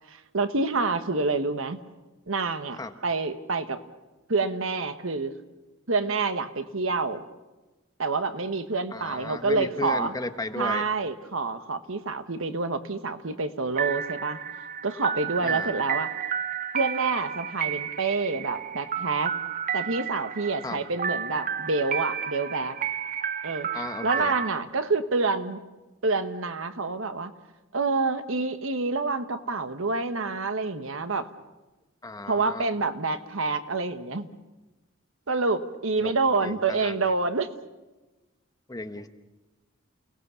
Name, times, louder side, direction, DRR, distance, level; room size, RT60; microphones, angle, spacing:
voice 1, 0.3-1.8 2.3-3.8 4.3-5.3 5.9-7.2 8.0-10.1 10.6-14.4 14.8-16.1 16.7-19.3 19.7-22.7 23.4-25.6 26.0-27.3 27.7-31.3 32.3-34.3 35.3-37.5, right 3 dB, 70° right, 10 dB, 1.3 m, -27 dB
voice 2, 8.9-10.9 15.4-15.7 20.6-20.8 23.7-24.4 32.0-32.7 36.0-36.1 36.4-37.0 38.7-39.1, left 2 dB, 20° left, 8 dB, 1.2 m, -35 dB
sound 1, 13.7-24.5, right 7 dB, 40° right, 0.7 m, -32 dB
29.0 x 18.5 x 6.9 m, 1.1 s
head